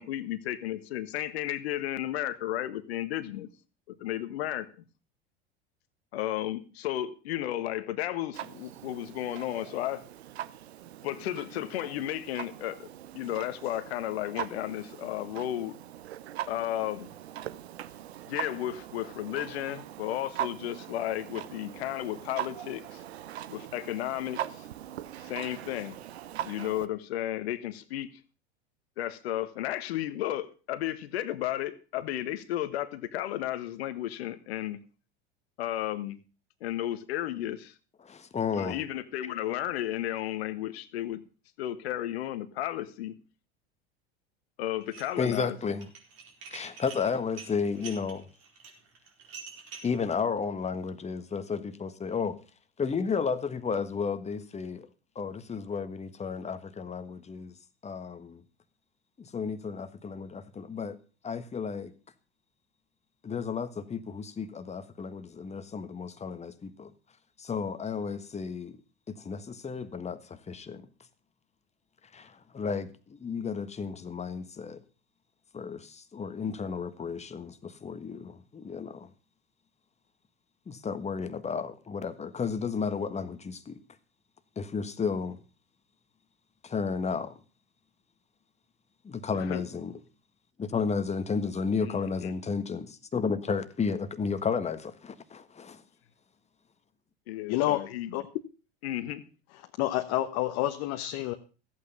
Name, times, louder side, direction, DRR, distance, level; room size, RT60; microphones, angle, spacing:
voice 1, 0.0-3.5 3.9-4.7 6.1-10.0 11.0-15.8 16.5-17.1 18.2-23.0 23.5-24.7 25.2-26.0 26.4-28.1 29.0-34.8 35.6-36.2 36.6-37.7 38.5-41.2 41.6-43.2 44.6-45.7 89.3-89.6 91.8-92.3 97.3-98.1 98.8-99.2, left 13 dB, 75° left, 1.5 m, -33 dB
Clock, 8.3-26.9, right 12 dB, 85° right, 0.9 m, -41 dB
voice 2, 38.0-38.8 45.2-45.9 46.5-48.3 49.8-52.4 52.8-54.9 55.1-57.6 57.8-58.4 59.2-61.0 61.2-61.9 63.2-66.9 67.4-68.8 69.1-70.9 72.1-74.8 75.5-79.1 80.7-83.8 84.6-85.4 86.6-87.3 89.0-89.9 90.6-95.8, left 5 dB, 20° left, 1.5 m, -33 dB
Dishes pots and pans, 44.8-45.4 45.7-50.0, right 5 dB, 50° right, 4.5 m, -46 dB
voice 3, 97.5-98.2 99.8-101.3, left 14 dB, 55° left, 1.2 m, -29 dB
14.5 x 8.6 x 5.5 m
hypercardioid pair, 95°, 31 cm